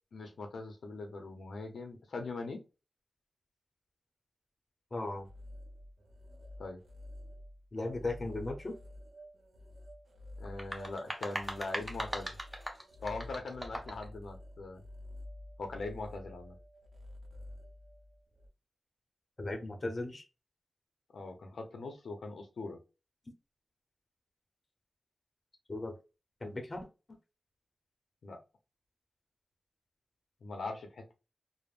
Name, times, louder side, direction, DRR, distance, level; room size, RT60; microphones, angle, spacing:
voice 1, 0.1-2.6 6.6-6.8 10.4-12.4 13.0-14.8 15.6-16.6 21.1-22.8 28.2-28.4 30.4-31.1, left 3 dB, 85° left, 4 dB, 0.6 m, -41 dB
voice 2, 4.9-5.3 7.7-8.8 19.4-20.2 25.7-26.0 26.4-26.9, left 2 dB, 35° left, 5 dB, 0.6 m, -37 dB
sound 1, 5.1-18.5, left 1 dB, 65° right, 0.6 m, -50 dB
sound 2, 10.4-14.1, equal, 10° right, 0.6 m, -40 dB
3.3 x 2.0 x 2.4 m, 0.29 s
wide cardioid pair, 100°, 0 cm